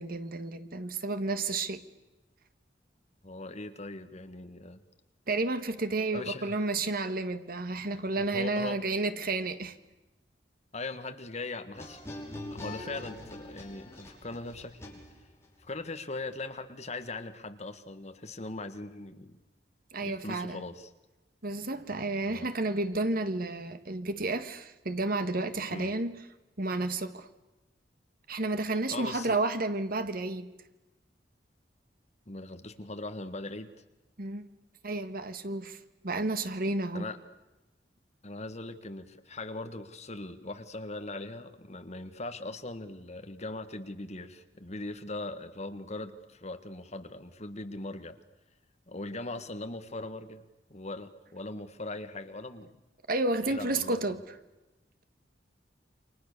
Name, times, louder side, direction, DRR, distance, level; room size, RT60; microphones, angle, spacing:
voice 1, 0.0-1.8 5.3-9.7 19.9-20.6 21.4-26.2 26.6-27.3 28.3-30.5 34.2-34.5 34.8-35.8 36.0-37.1 53.1-54.2, right 2 dB, 55° right, 1.7 m, -31 dB
voice 2, 3.2-4.8 6.1-6.7 8.3-8.8 10.7-12.0 12.5-15.0 15.6-19.4 20.0-20.9 22.2-22.5 25.7-25.9 28.9-29.4 32.3-33.7 36.9-37.2 38.2-48.2 48.9-50.4 50.7-52.7 53.5-54.0, left 2 dB, 40° left, 1.8 m, -40 dB
sound 1, 11.7-15.5, left 1 dB, 15° left, 5.9 m, -43 dB
29.0 x 26.0 x 6.9 m
head